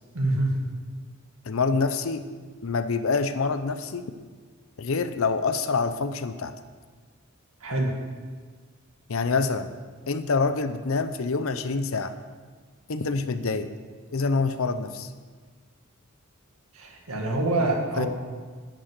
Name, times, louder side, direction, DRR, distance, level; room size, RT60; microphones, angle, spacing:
voice 1, 0.1-0.5 7.6-7.9 16.8-18.1, right 2 dB, 70° right, 0 dB, 2.1 m, -25 dB
voice 2, 1.5-2.3 2.6-4.0 4.8-6.5 9.1-9.7 10.1-12.1 12.9-13.7 14.1-15.1 18.0-18.1, left 4 dB, 65° left, 10 dB, 0.6 m, -26 dB
10.0 x 6.5 x 7.6 m, 1.5 s
head